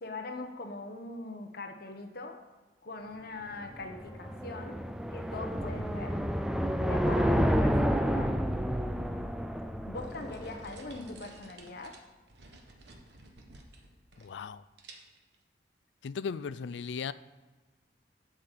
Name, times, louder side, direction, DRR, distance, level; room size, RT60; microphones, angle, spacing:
voice 1, 0.0-2.4 2.8-4.8 5.1-6.2 6.8-8.4 9.9-12.0, left 2 dB, 55° left, 5 dB, 1.0 m, -41 dB
sound 1, 3.6-11.0, equal, 5° right, 0.4 m, -30 dB
sound 2, 9.9-14.5 14.8-15.4, right 2 dB, 65° right, 1.3 m, -54 dB
voice 2, 14.2-14.6 16.0-17.1, left 6 dB, 75° left, 17 dB, 0.4 m, -37 dB
7.7 x 7.6 x 6.7 m, 1.3 s
head